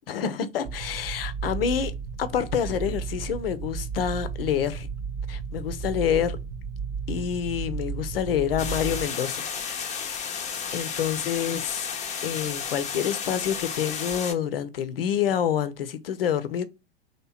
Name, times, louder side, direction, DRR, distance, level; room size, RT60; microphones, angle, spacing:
voice 1, 0.1-4.9 5.3-6.4 7.1-9.5 9.8-10.5 10.7-11.9 12.2-16.6, left 8 dB, 65° left, 0.6 m, -28 dB
sound 1, 0.6-9.1, right 6 dB, 40° right, 0.8 m, -34 dB
sound 2, 8.6-14.3, left 6 dB, 25° left, 0.7 m, -32 dB
3.2 x 2.9 x 4.0 m
figure-of-eight pair, 85°, 31 cm